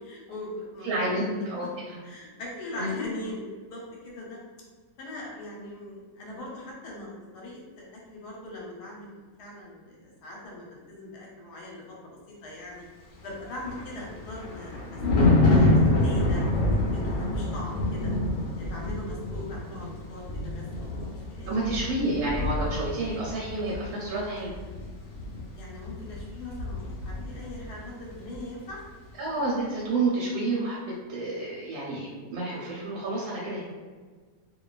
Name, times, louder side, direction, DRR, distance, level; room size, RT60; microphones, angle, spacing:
voice 1, 0.0-1.3 2.0-3.4 3.7-4.4 5.0-12.8 13.2-16.4 16.9-18.1 18.6-20.9 21.3-21.6 25.6-28.8, left 1 dB, 85° left, -3 dB, 1.2 m, -41 dB
voice 2, 0.8-2.0 2.8-3.0 21.5-24.5 29.2-30.8 31.1-33.6, right 2 dB, 75° right, -5 dB, 1.1 m, -29 dB
Thunder, 13.2-27.8 28.1-28.4, left 2 dB, 65° left, 0.9 m, -27 dB
2.6 x 2.2 x 2.3 m, 1.5 s
omnidirectional pair, 1.7 m